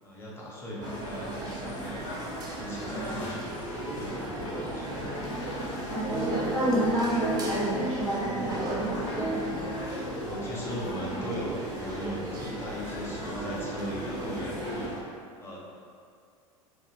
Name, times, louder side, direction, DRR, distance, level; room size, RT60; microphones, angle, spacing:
voice 1, 0.0-2.1 2.5-3.5 3.9-5.2 10.3-15.0 15.4-15.6, equal, 15° left, -6 dB, 0.6 m, -38 dB
sound 1, 0.8-15.0, left 1 dB, 55° left, 0.6 m, -40 dB
sound 2, 0.8-14.9, right 2 dB, 20° right, 0.4 m, -37 dB
voice 2, 2.9-3.2 5.9-9.3, right 1 dB, 90° left, -10 dB, 0.7 m, -29 dB
sound 3, 3.8-11.3, equal, 90° right, 0.7 m, -38 dB
2.4 x 2.2 x 3.2 m, 2.3 s
figure-of-eight pair, 75°, 18 cm